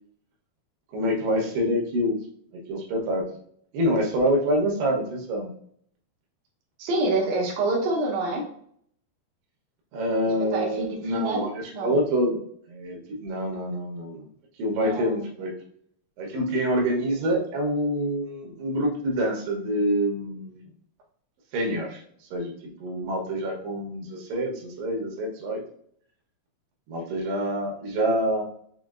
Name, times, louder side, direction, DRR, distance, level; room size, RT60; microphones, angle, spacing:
voice 1, 0.9-2.2 2.7-3.2 3.7-5.5 9.9-12.4 12.7-14.3 14.6-15.5 16.2-20.6 21.5-22.0 22.3-22.5 22.8-25.6 26.9-28.4, equal, 80° right, 0 dB, 3.1 m, -26 dB
voice 2, 6.8-8.4 10.5-11.9 14.8-15.1, right 2 dB, 65° right, -4 dB, 1.8 m, -27 dB
7.0 x 2.3 x 2.4 m, 0.63 s
omnidirectional pair, 4.7 m